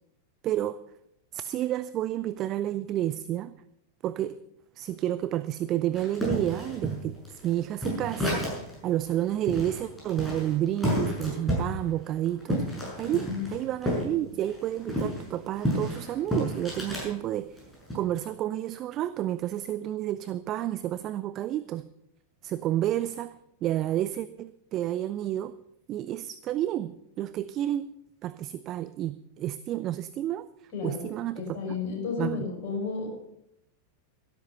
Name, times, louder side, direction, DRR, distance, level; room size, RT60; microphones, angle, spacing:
voice 1, 0.4-0.8 1.3-3.5 4.0-4.4 4.8-12.7 13.0-17.6 17.9-21.8 22.4-23.4 23.6-25.6 25.9-27.9 28.2-30.5 30.8-31.8 32.2-32.5, right 12 dB, 35° right, 15 dB, 0.5 m, -30 dB
sound 1, 6.0-8.8 9.1-9.2 9.5-14.1 14.4-17.1 17.6-18.0, equal, 5° left, 6.5 m, -31 dB
voice 2, 13.0-13.5 30.7-31.1 31.3-33.2, left 5 dB, 45° left, 0 dB, 5.7 m, -33 dB
13.0 x 12.5 x 5.5 m, 0.79 s
figure-of-eight pair, 90°, 0 cm